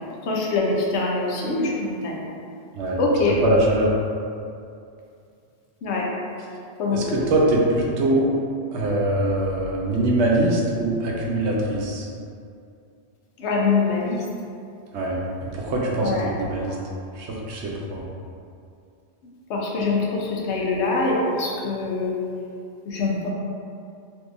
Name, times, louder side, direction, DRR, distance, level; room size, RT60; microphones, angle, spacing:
voice 1, 0.3-2.2 3.0-3.4 5.8-6.0 6.8-7.0 13.4-14.2 16.0-16.3 16.7-16.8 19.5-22.1 22.9-23.3, left 3 dB, 80° left, -3 dB, 0.9 m, -24 dB
voice 2, 3.4-3.9 6.9-8.3 8.7-12.1 14.9-16.8 17.2-18.1, right 1 dB, 80° right, -2 dB, 0.9 m, -23 dB
3.6 x 2.7 x 2.5 m, 2.5 s
omnidirectional pair, 1.2 m